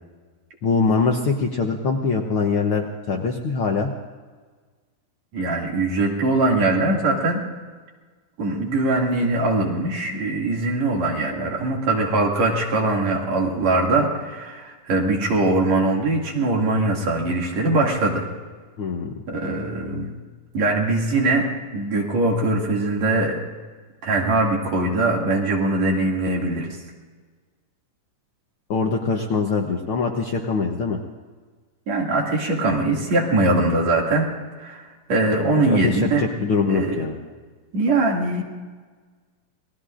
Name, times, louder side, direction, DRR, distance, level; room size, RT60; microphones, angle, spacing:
voice 1, 0.6-3.9 18.8-19.2 28.7-31.0 35.7-37.1, left 4 dB, 65° left, 1 dB, 1.4 m, -23 dB
voice 2, 5.3-7.4 8.4-18.2 19.3-20.1 20.5-23.4 24.0-26.8 31.9-34.3 34.6-34.8 35.1-36.2 36.7-37.0 37.7-38.4, right 2 dB, 60° right, -1 dB, 3.5 m, -21 dB
28.0 x 20.0 x 2.5 m, 1.4 s
omnidirectional pair, 3.6 m